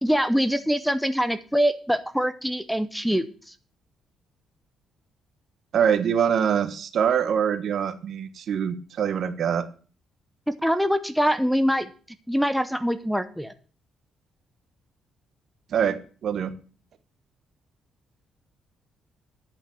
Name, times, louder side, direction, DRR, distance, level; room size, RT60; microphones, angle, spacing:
voice 1, 0.0-3.3 10.5-11.9 12.3-13.5, equal, ahead, 10 dB, 0.8 m, -24 dB
voice 2, 5.7-9.7 15.7-16.5, right 8 dB, 65° right, 11 dB, 1.2 m, -24 dB
11.0 x 5.7 x 7.1 m, 0.39 s
cardioid pair, 90°, 0 cm